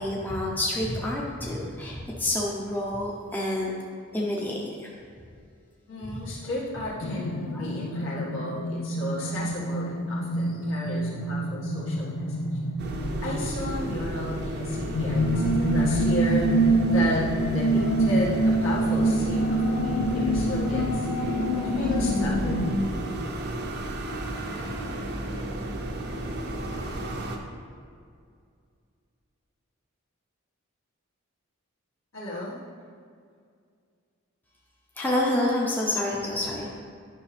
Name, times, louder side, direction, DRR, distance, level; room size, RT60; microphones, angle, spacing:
voice 1, 0.0-3.7 4.1-5.0 7.5-7.7 35.0-36.8, left 1 dB, 10° left, -4 dB, 0.8 m, -28 dB
voice 2, 5.9-12.6 13.2-21.5 21.7-22.8 32.1-32.6 36.3-36.4, left 1 dB, 65° left, -6 dB, 1.8 m, -34 dB
sound 1, 7.0-22.7, right 1 dB, 80° left, 0.8 m, -26 dB
sound 2, 12.8-27.4, right 1 dB, 50° right, 0.8 m, -33 dB
9.9 x 6.1 x 3.4 m, 2.2 s
head